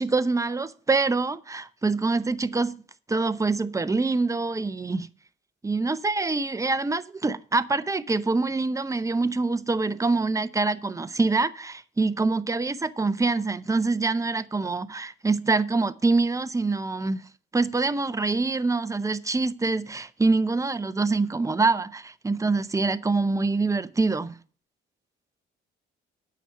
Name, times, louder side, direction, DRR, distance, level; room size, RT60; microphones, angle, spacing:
voice 1, 0.0-2.8 3.1-5.1 5.6-17.2 17.5-24.4, right 3 dB, 15° right, 0.7 m, -25 dB
9.1 x 6.1 x 7.6 m
cardioid pair, 90°, 20 cm